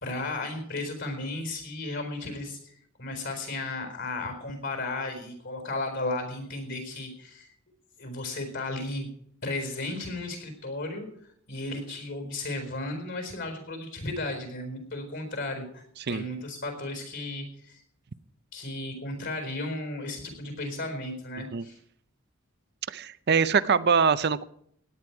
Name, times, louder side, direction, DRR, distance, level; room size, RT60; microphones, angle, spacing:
voice 1, 0.0-7.5 8.0-9.1 9.4-11.1 11.5-17.8 18.5-21.8, left 2 dB, 55° left, 5 dB, 4.4 m, -34 dB
voice 2, 22.9-24.4, right 5 dB, 50° right, 15 dB, 0.6 m, -23 dB
17.5 x 10.5 x 4.7 m, 0.67 s
head